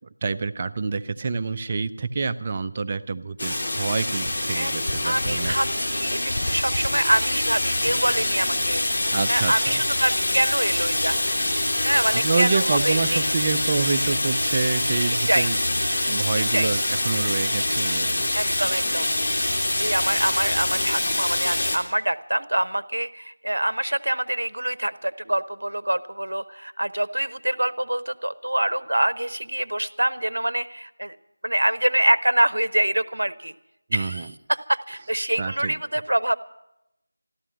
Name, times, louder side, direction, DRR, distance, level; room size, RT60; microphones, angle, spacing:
voice 1, 0.2-5.6 9.1-9.8 12.1-15.6 16.1-18.3 33.9-34.3 35.4-35.8, right 4 dB, 25° right, 9 dB, 0.5 m, -27 dB
sound 1, 3.4-21.8, left 1 dB, 50° left, 2.8 m, -25 dB
voice 2, 5.0-11.2 11.8-13.2 15.3-15.5 16.5-16.7 18.3-19.1 19.8-31.2 31.4-33.5 33.9-36.4, right 1 dB, 75° right, 13 dB, 0.9 m, -25 dB
14.5 x 12.5 x 7.8 m, 0.86 s
figure-of-eight pair, 170°, 0 cm